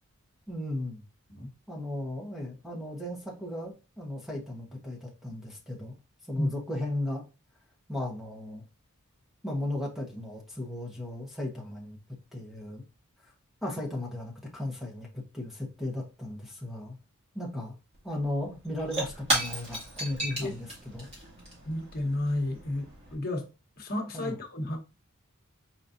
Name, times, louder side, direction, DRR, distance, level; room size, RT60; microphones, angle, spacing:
voice 1, 0.5-1.0 1.7-5.9 6.3-7.2 7.9-8.6 9.4-12.0 12.3-12.8 13.6-17.0 17.3-17.7 18.0-21.1 24.1-24.3, left 1 dB, ahead, 1.1 m, -36 dB
Shatter / Crushing, 17.9-18.0 18.2-23.1, right 1 dB, 30° right, 2.3 m, -35 dB
voice 2, 21.7-23.5 23.8-24.8, left 1 dB, 45° left, 1.3 m, -32 dB
4.8 x 4.1 x 2.7 m
head